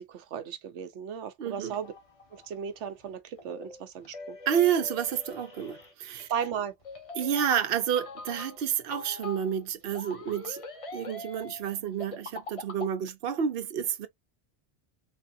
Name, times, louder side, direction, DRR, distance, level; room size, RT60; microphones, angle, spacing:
voice 1, 0.0-1.9 2.3-4.4 6.3-6.7, right 8 dB, 85° right, 1.0 m, -36 dB
voice 2, 1.4-1.8 4.5-6.3 7.2-10.6 10.9-14.1, right 9 dB, 60° right, 0.9 m, -29 dB
sound 1, 1.7-12.9, left 3 dB, 35° left, 0.8 m, -43 dB
3.4 x 3.3 x 2.6 m
omnidirectional pair, 1.2 m